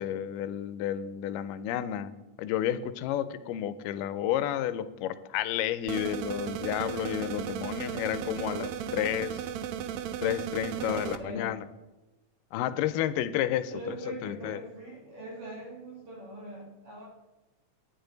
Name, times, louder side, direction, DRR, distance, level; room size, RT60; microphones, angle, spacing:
voice 1, 0.0-2.1 2.4-9.4 10.2-11.6 12.5-14.0 14.2-14.6, left 11 dB, 90° left, 14 dB, 2.2 m, -31 dB
sound 1, 5.9-11.2, right 9 dB, 85° right, 1.5 m, -35 dB
voice 2, 10.7-11.5 13.7-17.1, right 1 dB, 45° right, -3 dB, 2.9 m, -41 dB
10.5 x 9.5 x 3.9 m, 1.1 s
omnidirectional pair, 3.7 m